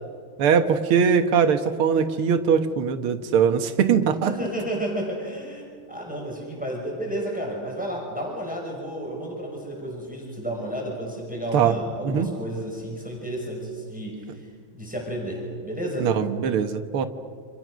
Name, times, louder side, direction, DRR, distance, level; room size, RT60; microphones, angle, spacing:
voice 1, 0.4-4.3 11.5-11.8 12.0-12.3 16.0-17.1, right 7 dB, 75° right, 8 dB, 2.2 m, -21 dB
voice 2, 4.3-16.1, right 1 dB, 5° right, -1 dB, 5.6 m, -32 dB
29.5 x 27.0 x 6.3 m, 2.3 s
omnidirectional pair, 2.4 m